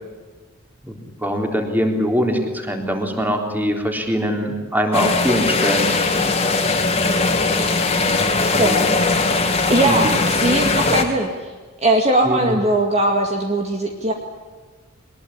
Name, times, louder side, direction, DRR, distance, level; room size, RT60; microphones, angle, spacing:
voice 1, 0.9-5.9 8.0-8.9 9.9-10.2 10.8-11.1 12.2-12.6, equal, 10° right, 3 dB, 3.7 m, -23 dB
sound 1, 4.9-11.0, left 3 dB, 30° left, 2.6 m, -19 dB
voice 2, 9.7-11.3 11.8-14.1, right 1 dB, 30° right, 2 dB, 2.3 m, -19 dB
23.0 x 21.0 x 10.0 m, 1.4 s
head